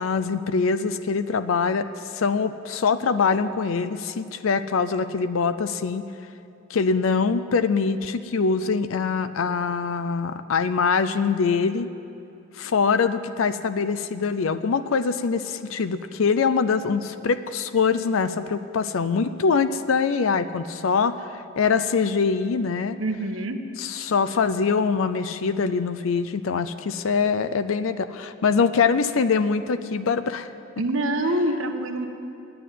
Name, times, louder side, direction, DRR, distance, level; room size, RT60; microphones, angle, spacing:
voice 1, 0.0-1.9 2.1-6.0 6.7-11.9 12.6-23.0 23.8-30.5, left 5 dB, 80° left, 12 dB, 0.5 m, -23 dB
voice 2, 23.0-23.6 24.0-24.1 30.8-32.1, right 1 dB, 75° right, 6 dB, 1.1 m, -25 dB
10.0 x 9.3 x 9.2 m, 2.7 s
head